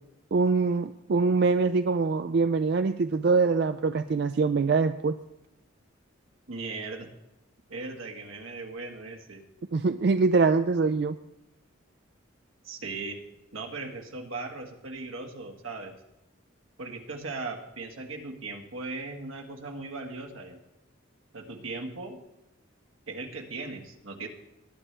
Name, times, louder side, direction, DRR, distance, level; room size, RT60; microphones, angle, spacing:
voice 1, 0.3-5.1 9.7-11.2, right 4 dB, 55° right, 10 dB, 0.4 m, -24 dB
voice 2, 6.5-7.1 7.7-9.4 12.6-13.2 13.5-15.9 16.8-20.6 21.3-22.2 23.1-24.3, right 3 dB, 80° right, 2 dB, 1.7 m, -38 dB
19.5 x 10.0 x 3.3 m, 0.90 s
head